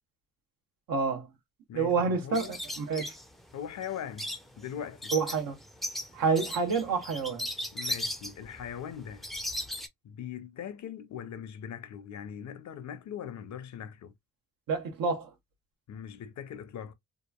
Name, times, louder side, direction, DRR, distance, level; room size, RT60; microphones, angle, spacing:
voice 1, 0.9-1.3 1.7-3.1 5.1-5.6 6.1-7.5 14.7-15.3, right 5 dB, 75° right, 0.9 m, -28 dB
voice 2, 1.7-2.5 3.5-5.1 7.7-9.3 10.0-14.1 15.9-16.9, left 8 dB, 55° left, 0.5 m, -40 dB
sound 1, 2.3-9.9, left 1 dB, ahead, 0.4 m, -37 dB
2.9 x 2.4 x 2.2 m
cardioid pair, 90°, 34 cm